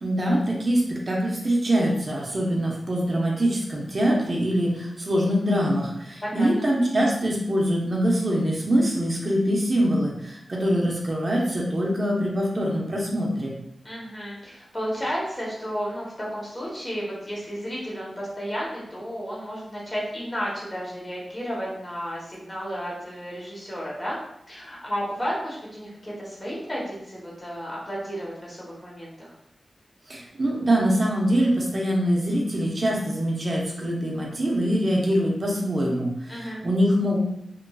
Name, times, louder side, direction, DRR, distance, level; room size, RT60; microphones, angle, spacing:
voice 1, 0.0-13.5 30.1-37.2, equal, 40° right, -2 dB, 0.6 m, -24 dB
voice 2, 6.2-6.5 13.8-24.1 24.5-29.3 36.3-36.6, equal, 20° left, -5 dB, 1.0 m, -32 dB
2.9 x 2.5 x 2.3 m, 0.78 s
wide cardioid pair, 130°, 0 cm